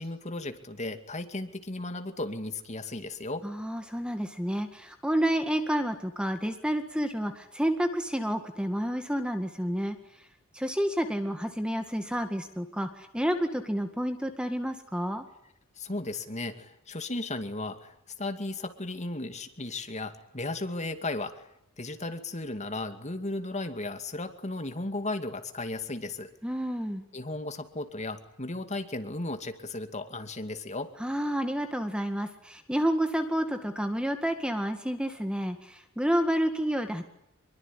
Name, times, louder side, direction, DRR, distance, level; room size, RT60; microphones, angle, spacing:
voice 1, 0.0-3.4 15.8-21.5 21.8-26.3 27.1-30.9, left 2 dB, 30° left, 8 dB, 2.4 m, -35 dB
voice 2, 3.4-10.0 10.5-15.3 26.4-27.0 31.0-37.0, equal, 5° right, 7 dB, 1.9 m, -29 dB
25.5 x 23.0 x 10.0 m, 0.75 s
head